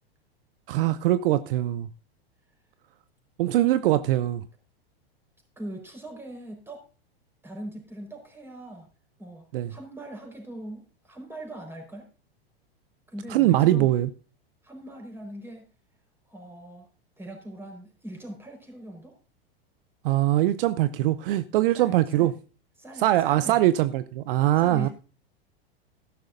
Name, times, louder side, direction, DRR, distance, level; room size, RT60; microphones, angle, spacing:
voice 1, 0.7-1.9 3.4-4.4 9.5-9.7 13.3-14.1 20.0-22.3 23.0-24.9, right 14 dB, 60° right, 0.6 m, -22 dB
voice 2, 5.6-6.8 7.4-8.9 9.2-12.1 13.1-14.0 14.6-15.6 16.3-16.9 17.2-19.1 21.7-22.3 22.8-23.6 24.5-24.9, right 1 dB, 5° right, 4.7 m, -41 dB
14.0 x 12.0 x 2.6 m
hypercardioid pair, 105°, 31 cm